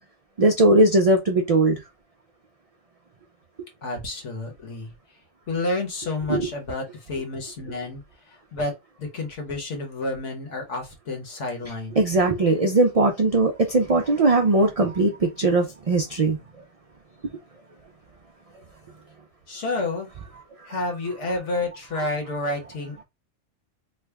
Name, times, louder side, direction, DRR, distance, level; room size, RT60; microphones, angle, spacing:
voice 1, 0.4-1.8 6.3-6.5 12.0-16.4, right 2 dB, 70° right, 0.3 m, -19 dB
voice 2, 3.8-4.9 5.5-8.0 8.5-8.7 9.0-12.0 19.5-20.1 20.7-23.0, left 2 dB, 70° left, 1.5 m, -30 dB
3.2 x 2.2 x 3.3 m
omnidirectional pair, 1.3 m